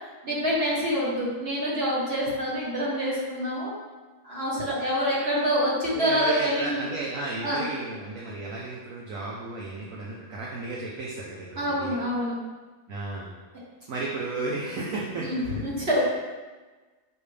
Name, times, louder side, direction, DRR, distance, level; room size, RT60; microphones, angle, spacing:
voice 1, 0.2-3.8 4.2-6.8 7.4-7.6 11.6-12.3 15.2-16.0, equal, 40° right, -7 dB, 2.1 m, -26 dB
voice 2, 5.9-12.0 12.9-13.3 13.9-15.6 15.9-16.0, right 2 dB, 65° right, -3 dB, 1.2 m, -33 dB
6.7 x 5.2 x 3.4 m, 1.3 s
omnidirectional pair, 1.6 m